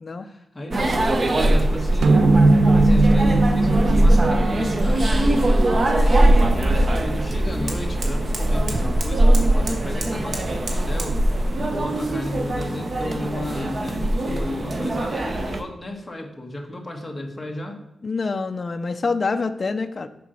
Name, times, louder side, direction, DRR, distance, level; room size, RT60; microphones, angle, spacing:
voice 1, 0.2-2.3 2.6-5.7 6.8-17.8, left 1 dB, 15° left, 1 dB, 1.2 m, -34 dB
sound 1, 0.7-15.6, right 1 dB, 30° right, 0.8 m, -21 dB
sound 2, 2.0-6.6, right 2 dB, 80° right, 0.6 m, -20 dB
voice 2, 6.0-6.5 18.0-20.1, left 4 dB, 35° left, 7 dB, 0.5 m, -26 dB
sound 3, 6.5-11.2, right 3 dB, 65° right, 1.4 m, -37 dB
7.0 x 5.1 x 6.3 m, 0.94 s
wide cardioid pair, 170°, 0 cm